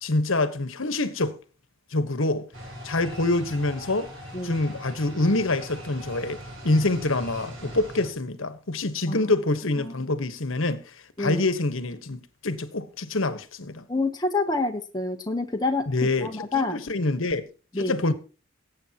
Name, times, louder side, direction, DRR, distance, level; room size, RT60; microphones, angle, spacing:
voice 1, 0.0-1.4 1.9-2.5 2.8-4.1 4.4-6.4 6.6-10.8 11.2-13.8 15.9-16.3 16.5-17.4 17.8-18.1, left 2 dB, 70° left, 1.2 m, -26 dB
sound 1, 2.5-8.1, equal, 65° right, 3.9 m, -41 dB
voice 2, 13.9-15.9 16.2-16.8 17.7-18.0, left 3 dB, 20° left, 0.9 m, -27 dB
18.5 x 8.6 x 2.9 m
head